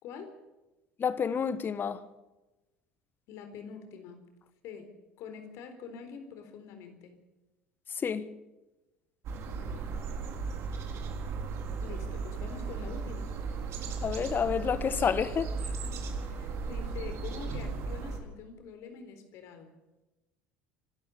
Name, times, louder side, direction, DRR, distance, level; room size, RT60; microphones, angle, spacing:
voice 1, 0.0-0.3 3.3-4.2 4.6-7.2 9.6-9.9 11.8-13.3 15.6-19.7, left 6 dB, 60° left, 4.1 m, -45 dB
voice 2, 1.0-2.0 8.0-8.3 14.0-15.5, left 7 dB, 35° left, 1.5 m, -29 dB
sound 1, 9.2-18.2, right 4 dB, 50° right, 3.9 m, -36 dB
26.0 x 13.0 x 8.5 m
hypercardioid pair, 70°, 6 cm